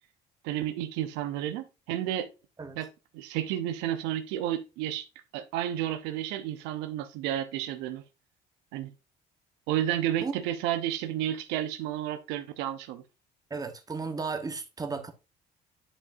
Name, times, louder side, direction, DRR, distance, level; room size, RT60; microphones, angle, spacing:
voice 1, 0.4-2.3 2.8-2.9 3.1-5.1 5.3-8.0 8.7-8.9 9.7-13.0, right 12 dB, 85° right, 0.8 m, -31 dB
voice 2, 13.5-15.1, right 4 dB, 20° right, 1.2 m, -34 dB
9.8 x 5.0 x 2.6 m
supercardioid pair, 85°, 18 cm